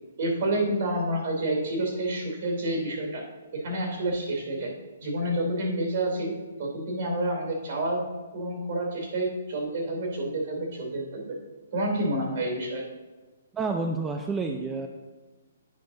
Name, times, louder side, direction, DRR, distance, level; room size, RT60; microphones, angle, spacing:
voice 1, 0.2-3.2 3.5-4.7 5.0-6.3 6.6-8.0 8.3-11.3 11.7-12.8, right 1 dB, 60° right, 0 dB, 2.8 m, -28 dB
voice 2, 13.5-14.9, right 3 dB, 10° right, 4 dB, 0.4 m, -29 dB
9.6 x 5.1 x 3.9 m, 1.2 s
hypercardioid pair, 145°, 0 cm